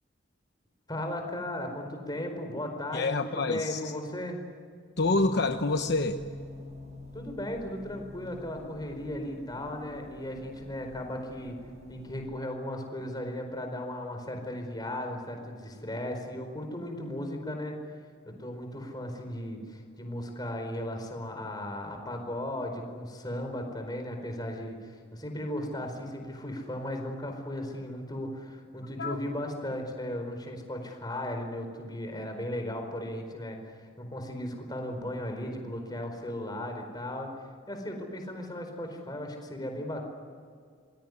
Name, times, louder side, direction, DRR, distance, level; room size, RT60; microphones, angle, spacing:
voice 1, 0.9-4.4 7.1-11.6 11.9-17.7 18.2-37.3 37.7-40.1, left 1 dB, 20° left, 4 dB, 4.6 m, -36 dB
voice 2, 2.9-3.8 5.0-6.2 29.0-29.2, left 3 dB, 55° left, 6 dB, 1.0 m, -27 dB
sound 1, 5.0-12.2, equal, 35° right, 7.6 m, -45 dB
27.0 x 21.5 x 9.7 m, 2.1 s
head